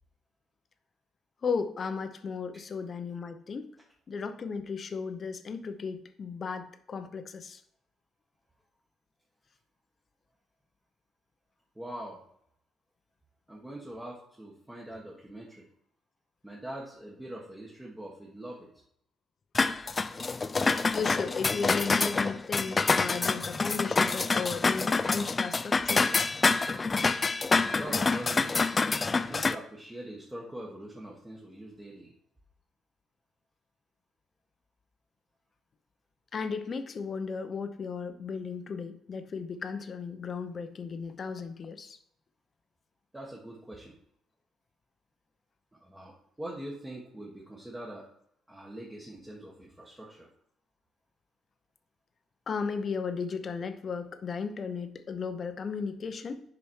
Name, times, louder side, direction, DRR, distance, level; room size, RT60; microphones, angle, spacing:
voice 1, 1.4-3.7 4.1-7.6 20.6-26.1 36.3-42.0 52.5-56.4, left 5 dB, 45° left, 9 dB, 0.8 m, -35 dB
voice 2, 11.7-12.2 13.5-15.6 16.4-18.7 27.6-28.7 29.2-32.1 43.1-43.9 45.7-46.1 46.4-48.0 48.5-50.3, right 1 dB, 10° right, -3 dB, 1.4 m, -43 dB
sound 1, 19.5-29.5, left 4 dB, 30° left, 0.4 m, -27 dB
7.0 x 5.1 x 4.6 m, 0.72 s
supercardioid pair, 75°, 0 cm